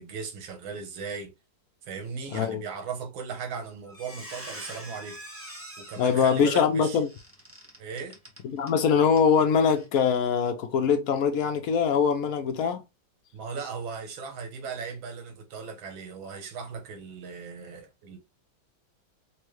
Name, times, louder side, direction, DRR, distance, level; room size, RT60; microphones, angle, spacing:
voice 1, 0.0-1.3 1.8-5.2 5.8-7.0 7.8-8.2 13.3-18.2, right 5 dB, 90° right, 1.7 m, -37 dB
Squeak, 3.9-8.8 9.1-9.3 9.7-9.9, right 1 dB, 15° right, 0.4 m, -44 dB
voice 2, 6.0-7.1 8.5-12.8, left 6 dB, 65° left, 0.9 m, -23 dB
4.5 x 2.2 x 3.1 m
omnidirectional pair, 2.1 m